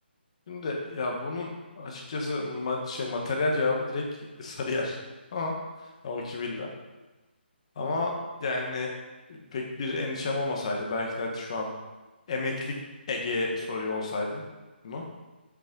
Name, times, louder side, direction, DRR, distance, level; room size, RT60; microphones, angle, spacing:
voice 1, 0.5-1.5 1.8-4.0 4.4-5.0 5.3-5.5 6.0-6.7 7.8-8.1 8.4-8.9 9.3-11.7 12.3-12.7 13.1-14.4 14.8-15.0, left 3 dB, 35° left, 0 dB, 1.7 m, -30 dB
7.8 x 6.7 x 5.5 m, 1.1 s
hypercardioid pair, 170°, 6 cm